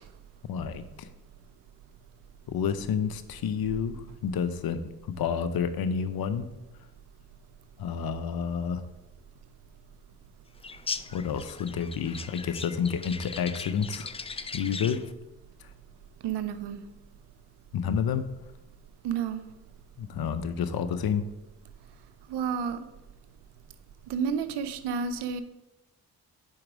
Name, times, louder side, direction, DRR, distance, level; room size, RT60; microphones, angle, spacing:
voice 1, 0.5-1.1 2.5-4.8 5.1-6.5 7.8-8.8 11.1-14.1 14.5-15.0 15.6-15.7 17.7-18.2 20.0-21.2, left 7 dB, 65° left, 12 dB, 0.7 m, -29 dB
sound 1, 10.6-15.1, left 4 dB, 15° left, 0.3 m, -39 dB
voice 2, 16.2-16.8 19.0-19.4 22.3-22.8 24.1-25.4, right 7 dB, 90° right, 11 dB, 0.6 m, -30 dB
4.8 x 4.4 x 6.0 m, 0.97 s
supercardioid pair, 45°, 40 cm